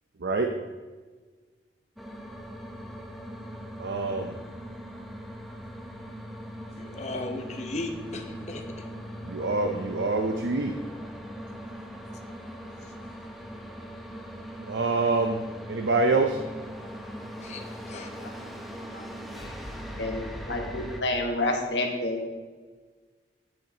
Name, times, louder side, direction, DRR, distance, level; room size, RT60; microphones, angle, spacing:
sound 1, 2.0-21.0, equal, ahead, 0.7 m, -40 dB
voice 1, 3.8-4.4 9.2-10.7 14.7-15.4 15.7-16.4, right 3 dB, 80° right, 4 dB, 0.6 m, -25 dB
voice 2, 6.7-8.8 17.4-18.1, left 2 dB, 40° left, 4 dB, 0.8 m, -36 dB
voice 3, 19.3-19.6 20.0-22.2, left 2 dB, 85° left, 2 dB, 1.3 m, -29 dB
9.2 x 8.5 x 2.9 m, 1.4 s
head